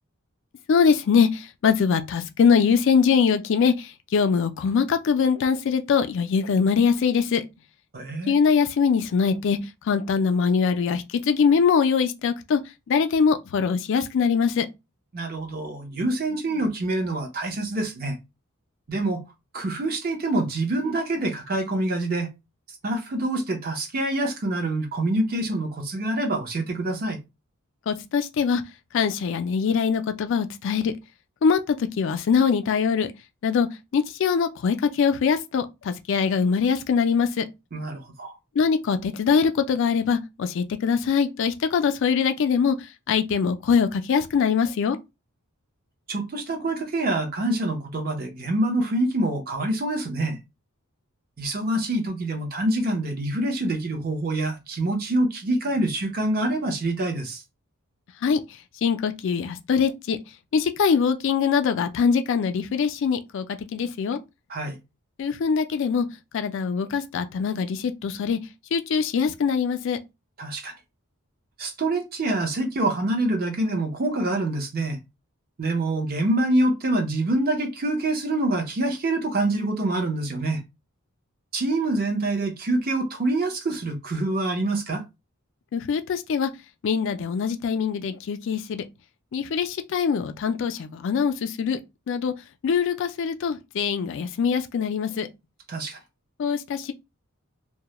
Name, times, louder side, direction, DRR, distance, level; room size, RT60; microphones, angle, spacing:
voice 1, 0.7-7.4 8.3-9.6 9.9-12.6 12.9-14.7 27.9-28.6 28.9-30.9 31.4-33.1 33.4-33.7 33.9-37.4 38.6-45.0 58.2-58.4 58.8-60.2 60.5-63.5 63.7-64.2 65.2-66.1 66.3-68.4 68.7-70.0 85.7-86.5 86.8-88.8 89.3-91.8 92.1-92.3 92.6-95.3 96.4-96.9, left 6 dB, 55° left, 0.3 m, -23 dB
voice 2, 7.9-8.3 15.1-18.2 18.9-19.2 19.5-22.3 22.8-27.2 37.7-38.3 46.1-50.4 51.4-57.4 64.5-64.8 70.4-70.7 71.6-75.0 75.6-80.6 81.5-85.0 95.7-96.0, right 2 dB, 40° right, 0.6 m, -26 dB
2.2 x 2.0 x 2.9 m
head